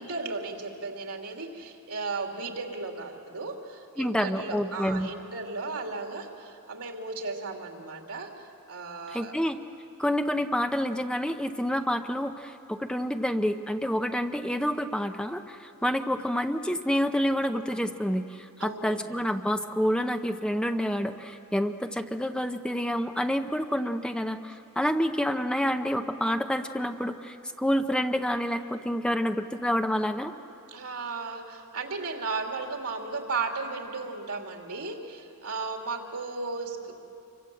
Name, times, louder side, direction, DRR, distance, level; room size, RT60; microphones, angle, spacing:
voice 1, 0.0-9.3 18.6-19.2 30.7-36.9, right 3 dB, 85° right, 2 dB, 3.0 m, -35 dB
voice 2, 4.0-5.1 9.1-9.6 10.0-30.3, equal, 5° left, 6 dB, 0.7 m, -28 dB
27.0 x 24.5 x 7.8 m, 2.8 s
head